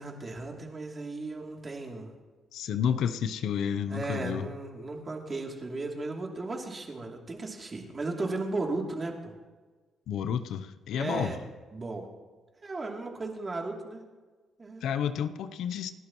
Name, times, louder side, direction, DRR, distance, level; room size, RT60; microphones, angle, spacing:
voice 1, 0.0-2.1 3.9-9.3 10.9-11.4 11.7-12.1 12.6-14.0 14.6-14.9, right 2 dB, 30° right, 0 dB, 2.9 m, -35 dB
voice 2, 2.5-4.5 10.1-11.4 14.8-15.9, left 8 dB, 80° left, 11 dB, 0.7 m, -30 dB
28.5 x 11.5 x 3.1 m, 1.3 s
cardioid pair, 90°, 0 cm